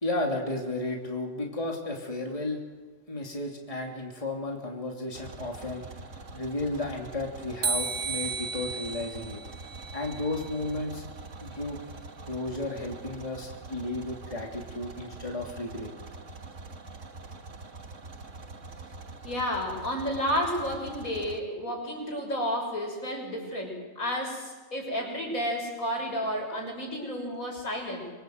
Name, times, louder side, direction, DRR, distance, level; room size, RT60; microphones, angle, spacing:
voice 1, 0.0-2.6 3.1-5.9 6.3-9.4 9.9-11.0 11.4-11.8 12.3-15.9, left 2 dB, 25° left, 0 dB, 3.3 m, -33 dB
sound 1, 5.1-21.4, right 3 dB, 60° right, 2.1 m, -44 dB
sound 2, 7.6-10.7, right 5 dB, 45° right, 1.2 m, -34 dB
voice 2, 19.2-28.1, equal, 75° left, 1 dB, 6.7 m, -31 dB
26.5 x 24.0 x 8.0 m, 1.3 s
omnidirectional pair, 1.4 m